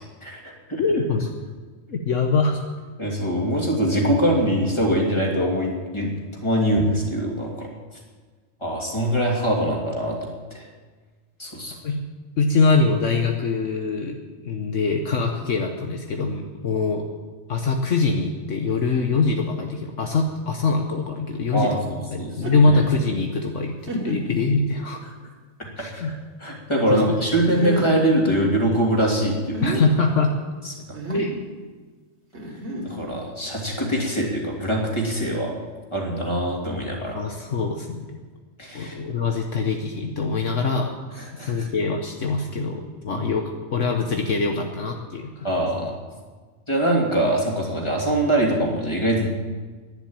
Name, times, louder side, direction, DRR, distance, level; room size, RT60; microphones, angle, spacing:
voice 1, 0.8-1.3 1.9-2.6 11.8-12.0 12.4-14.2 14.4-17.0 17.5-21.8 22.1-25.0 25.8-26.1 26.9-27.2 29.6-30.3 31.1-31.3 37.1-38.2 38.7-40.9 41.5-43.4 43.7-45.5, left 3 dB, 65° left, 3 dB, 1.4 m, -23 dB
voice 2, 3.0-6.2 6.4-7.7 8.6-10.2 10.5-10.7 11.4-11.8 21.5-22.3 22.6-22.8 25.8-26.1 26.4-29.6 30.6-30.7 32.8-35.5 35.9-37.2 38.6-39.0 41.2-41.7 43.1-43.2 45.4-46.0 46.7-49.3, right 1 dB, 20° left, -1 dB, 2.9 m, -23 dB
sound 1, 22.3-22.7 23.3-23.4 23.9-24.4 25.1-25.2 27.5-28.0 29.3-29.8 30.9-31.4 32.3-33.2, right 1 dB, 55° right, 2.9 m, -29 dB
11.5 x 10.5 x 8.9 m, 1.4 s
omnidirectional pair, 1.4 m